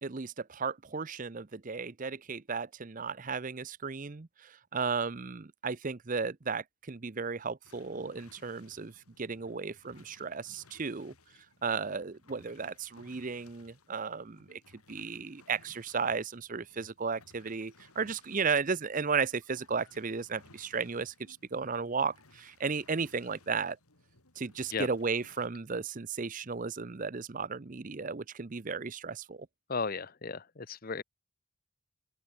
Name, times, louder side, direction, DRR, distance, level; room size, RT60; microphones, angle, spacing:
voice 1, 0.0-11.1 11.6-14.6 14.9-23.8 24.4-29.5, right 5 dB, 35° right, 0.6 m, -34 dB
sound 1, 7.6-25.5, left 3 dB, 85° left, 5.8 m, -61 dB
voice 2, 29.7-31.0, left 4 dB, 40° left, 0.8 m, -35 dB
head